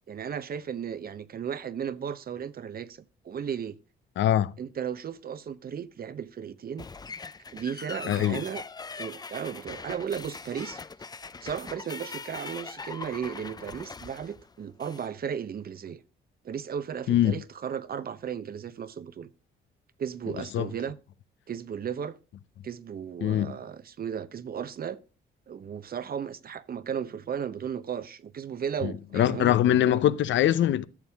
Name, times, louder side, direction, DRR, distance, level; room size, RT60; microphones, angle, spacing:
voice 1, 0.1-3.8 4.6-6.9 7.5-8.6 9.0-10.8 11.4-16.0 16.4-19.3 20.0-21.0 21.5-22.2 22.6-25.0 25.5-30.0, right 8 dB, 50° right, 0.9 m, -35 dB
voice 2, 4.2-4.5 8.1-8.4 17.1-17.3 20.5-20.7 23.2-23.5 28.8-30.9, left 11 dB, 70° left, 0.7 m, -23 dB
sound 1, 6.8-15.1, left 4 dB, 20° left, 0.5 m, -41 dB
13.0 x 7.2 x 3.5 m
cardioid pair, 90°, 20 cm